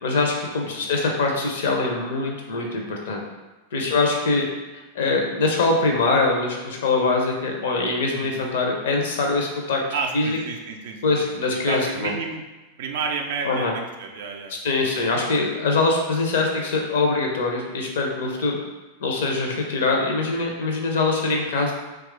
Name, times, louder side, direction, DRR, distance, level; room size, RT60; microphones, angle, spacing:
voice 1, 0.0-3.2 3.7-4.5 4.9-9.8 10.1-10.4 11.0-12.1 13.4-13.7 14.6-18.6 19.0-21.7, left 3 dB, 60° left, 1 dB, 0.6 m, -23 dB
voice 2, 0.6-0.9 3.8-4.1 8.0-8.4 9.9-12.4 12.8-14.5 14.8-15.4, right 5 dB, 55° right, 3 dB, 0.4 m, -32 dB
3.0 x 2.3 x 3.3 m, 1.1 s
figure-of-eight pair, 90°, 0 cm